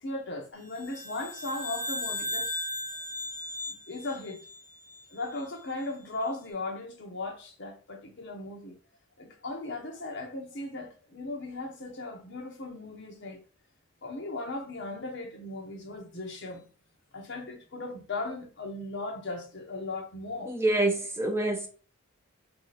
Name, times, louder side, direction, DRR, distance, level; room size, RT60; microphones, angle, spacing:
voice 1, 0.0-2.5 3.7-4.4 5.1-8.7 9.2-13.4 14.0-16.7 17.1-20.5, left 2 dB, 55° left, 0.8 m, -37 dB
sound 1, 0.7-5.2, left 1 dB, 5° left, 1.6 m, -37 dB
voice 2, 20.5-21.7, right 2 dB, 10° right, 0.4 m, -26 dB
3.2 x 2.9 x 4.0 m
head